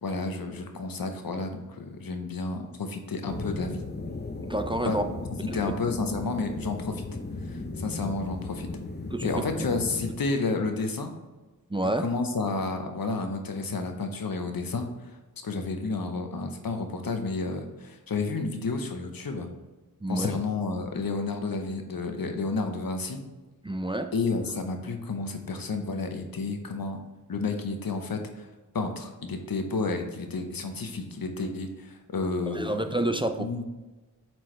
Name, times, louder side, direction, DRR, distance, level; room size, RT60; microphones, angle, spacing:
voice 1, 0.0-3.8 4.8-5.0 5.4-7.0 7.4-8.7 9.2-11.1 12.0-14.9 15.4-19.5 20.1-23.2 24.1-27.0 27.3-28.5 28.7-33.0 33.4-33.6, left 3 dB, 80° left, 5 dB, 0.9 m, -31 dB
sound 1, 3.3-10.1, left 2 dB, 30° left, 0.6 m, -36 dB
voice 2, 4.4-5.0 5.5-5.6 9.1-9.3 11.7-12.0 20.0-20.3 23.6-24.1 32.5-33.5, right 1 dB, 15° right, 7 dB, 0.4 m, -28 dB
7.6 x 4.5 x 3.2 m, 1.2 s
wide cardioid pair, 65°, 34 cm